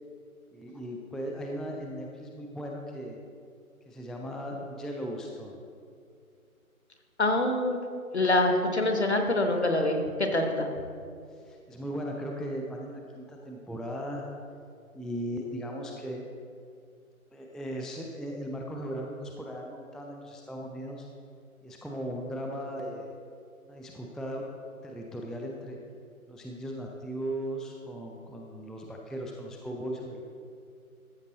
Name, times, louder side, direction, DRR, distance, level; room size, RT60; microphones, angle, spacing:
voice 1, 0.5-3.2 3.9-5.6 11.3-14.3 14.9-16.2 17.3-21.1 21.6-23.1 23.7-24.4 24.8-25.8 26.3-30.3, equal, ahead, 0 dB, 0.4 m, -37 dB
voice 2, 7.2-7.8 8.1-10.7, left 2 dB, 50° left, 5 dB, 1.0 m, -25 dB
13.5 x 5.0 x 3.9 m, 2.4 s
figure-of-eight pair, 165°, 43 cm